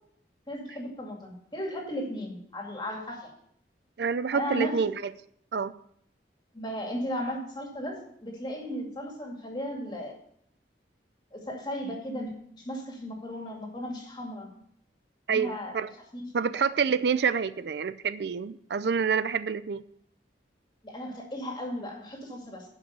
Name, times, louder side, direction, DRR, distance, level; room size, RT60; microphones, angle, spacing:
voice 1, 0.5-3.3 4.3-4.9 6.5-10.1 11.3-14.5 15.3-15.7 16.1-16.3 20.8-22.6, equal, 25° left, 1 dB, 2.3 m, -35 dB
voice 2, 4.0-5.1 5.5-5.7 15.3-15.9 16.3-19.8, right 6 dB, 65° right, 14 dB, 0.4 m, -27 dB
11.5 x 5.4 x 6.8 m, 0.68 s
head